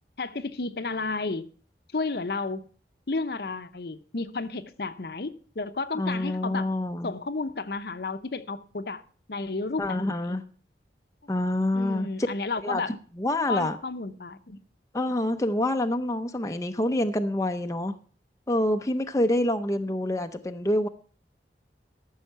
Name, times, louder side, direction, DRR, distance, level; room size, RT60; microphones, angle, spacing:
voice 1, 0.2-1.5 1.9-2.6 3.1-5.3 5.6-6.7 7.0-9.0 9.3-10.4 11.7-12.9 13.5-14.6, left 3 dB, 60° left, 0.7 m, -32 dB
voice 2, 5.9-7.1 9.8-10.4 11.3-12.1 12.6-13.8 14.9-17.9 18.5-20.9, left 1 dB, 20° left, 0.5 m, -27 dB
14.0 x 6.4 x 5.7 m
head